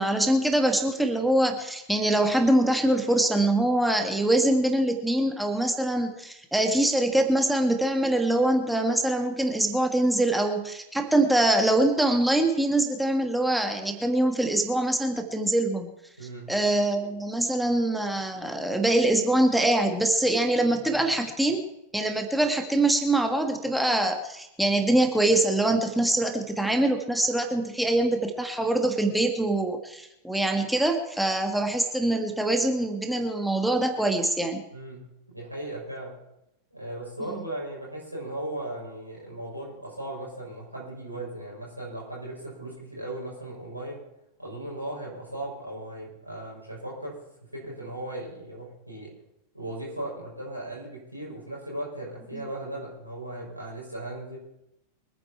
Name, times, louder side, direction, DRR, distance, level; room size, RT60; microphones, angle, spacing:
voice 1, 0.0-15.9 16.5-21.6 21.9-34.6, right 1 dB, ahead, 4 dB, 1.7 m, -24 dB
voice 2, 16.2-16.5 34.7-36.2 36.7-44.0 44.4-47.1 47.4-49.1 49.5-54.4, right 1 dB, 90° right, -4 dB, 6.3 m, -37 dB
24.0 x 9.6 x 4.5 m, 0.86 s
figure-of-eight pair, 90°, 0 cm